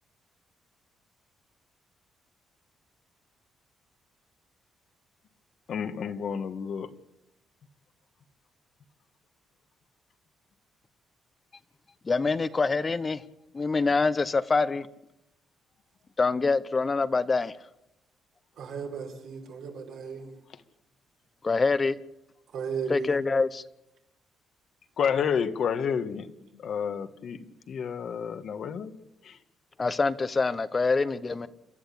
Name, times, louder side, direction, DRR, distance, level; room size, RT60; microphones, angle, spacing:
voice 1, 5.7-6.9 25.0-26.3 26.6-27.4 27.7-28.9 29.2-29.3, left 7 dB, 60° left, 1.6 m, -29 dB
voice 2, 12.0-13.2 13.5-14.9 16.2-17.5 21.4-22.0 22.9-23.6 29.8-31.5, left 4 dB, 30° left, 0.9 m, -25 dB
voice 3, 18.6-20.3 22.5-23.2, right 6 dB, 75° right, 5.9 m, -35 dB
28.5 x 12.5 x 8.6 m
cardioid pair, 90°, 0 cm